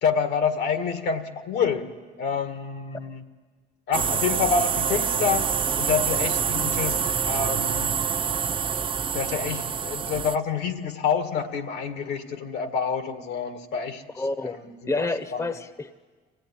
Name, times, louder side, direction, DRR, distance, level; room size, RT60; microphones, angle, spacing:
voice 1, 0.0-1.9 2.2-3.2 3.9-5.5 5.8-7.0 7.3-8.0 9.1-14.0 14.4-15.5, left 6 dB, 80° left, 7 dB, 2.0 m, -27 dB
sound 1, 3.9-10.4, right 7 dB, 30° right, 0.6 m, -26 dB
voice 2, 14.2-14.6 14.9-16.0, left 3 dB, 15° left, 12 dB, 0.9 m, -29 dB
24.0 x 17.0 x 10.0 m, 1.4 s
cardioid pair, 110°, 17 cm